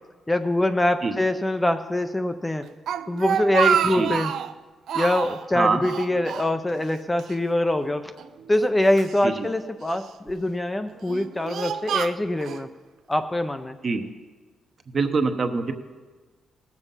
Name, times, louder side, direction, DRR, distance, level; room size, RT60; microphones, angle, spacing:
voice 1, 0.3-2.7 3.1-4.3 5.0-8.1 8.5-12.7 13.1-13.8, left 1 dB, 10° left, 8 dB, 0.4 m, -24 dB
Speech, 2.6-4.5 4.9-5.4 5.8-6.9 7.2-7.3 8.2-9.2 9.9-10.3 10.9-12.6, right 9 dB, 70° right, 0.4 m, -27 dB
voice 2, 14.9-15.7, right 4 dB, 40° right, 7 dB, 0.9 m, -23 dB
18.5 x 7.1 x 5.5 m, 1.3 s
cardioid pair, 135°, 0 cm